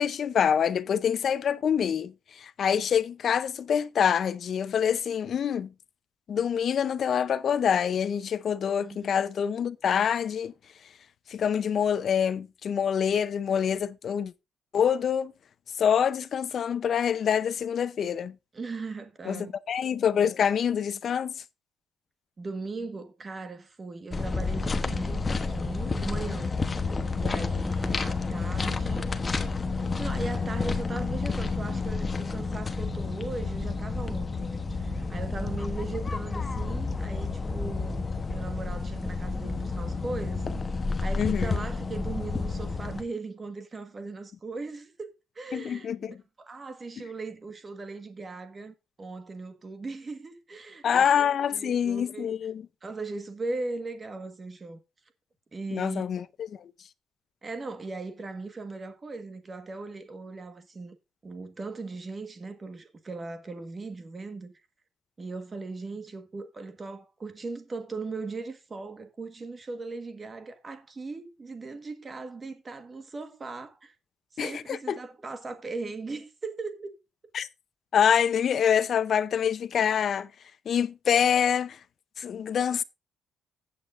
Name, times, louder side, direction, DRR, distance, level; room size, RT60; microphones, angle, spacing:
voice 1, 0.0-5.7 6.3-10.5 11.3-14.3 14.7-15.3 15.8-18.3 19.3-21.4 41.2-41.6 45.5-46.2 50.8-52.7 55.7-56.2 56.5-56.7 74.4-75.0 77.3-77.5 77.9-80.3 80.7-81.8 82.2-82.8, left 8 dB, 45° left, 0.6 m, -26 dB
voice 2, 8.8-9.1 18.5-19.6 22.4-29.2 29.8-40.4 41.0-51.1 51.4-52.3 52.8-54.8 55.5-56.1 57.4-61.0 61.2-64.6 65.2-73.9 74.3-76.9, right 3 dB, 25° right, 1.5 m, -38 dB
sound 1, 24.1-43.0, left 4 dB, 20° left, 1.0 m, -30 dB
15.0 x 8.4 x 2.6 m
cardioid pair, 165°, 0 cm